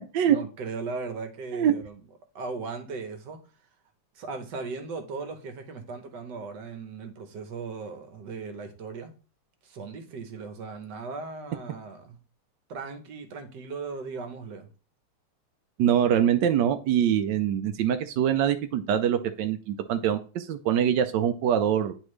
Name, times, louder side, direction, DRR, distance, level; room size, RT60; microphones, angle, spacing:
voice 1, 0.3-2.0 2.3-3.4 4.1-9.1 9.6-12.2 12.7-14.7, right 4 dB, 60° right, 1.5 m, -37 dB
voice 2, 15.8-21.9, right 9 dB, 75° right, 1.0 m, -24 dB
9.8 x 4.1 x 3.2 m
omnidirectional pair, 2.4 m